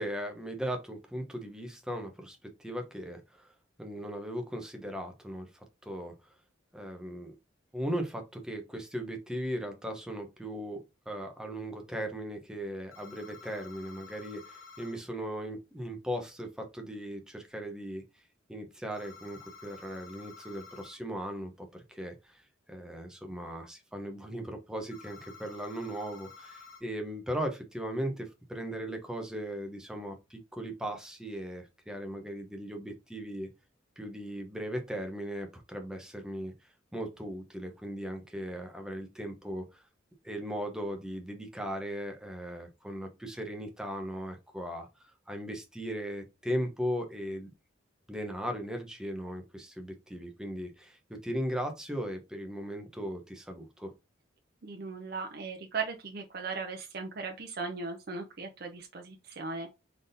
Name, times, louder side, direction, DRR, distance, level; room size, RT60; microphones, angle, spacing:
voice 1, 0.0-3.5 3.8-6.1 6.7-7.3 7.7-18.0 18.5-22.4 22.7-33.5 34.0-36.5 36.9-39.8 40.2-44.9 45.3-47.5 48.1-53.9, equal, 5° right, 0.8 m, -38 dB
sound 1, 12.9-15.0 18.9-21.0 24.9-26.8, left 4 dB, 80° left, 1.0 m, -51 dB
voice 2, 54.6-59.7, right 4 dB, 50° right, 0.6 m, -38 dB
4.0 x 3.6 x 2.6 m
head